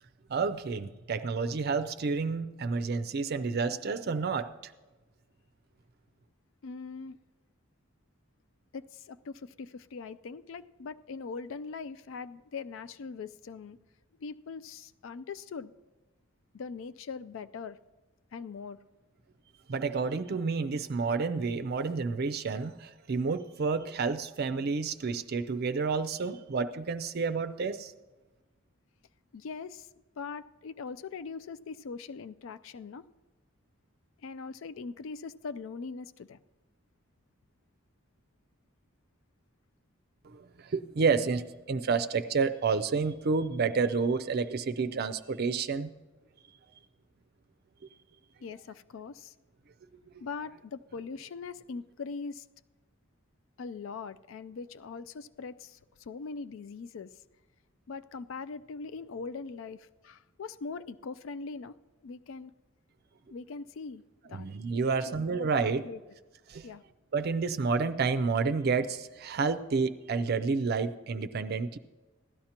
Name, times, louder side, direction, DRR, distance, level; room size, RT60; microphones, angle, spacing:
voice 1, 0.3-4.7 19.7-27.9 40.2-45.9 64.3-65.9 66.5-66.7 67.1-71.8, right 4 dB, 50° right, 10 dB, 0.4 m, -30 dB
voice 2, 6.6-7.2 8.7-13.8 14.2-15.7 16.5-17.8 18.3-18.8 29.3-29.9 30.2-33.0 34.2-36.4 48.4-49.3 50.2-52.5 53.6-57.1 57.9-61.7 62.0-62.5 63.3-64.0 64.3-64.5 64.9-65.0 65.3-66.0 66.6-66.8, left 4 dB, 75° left, 12 dB, 0.4 m, -41 dB
16.5 x 12.0 x 2.9 m, 1.2 s
head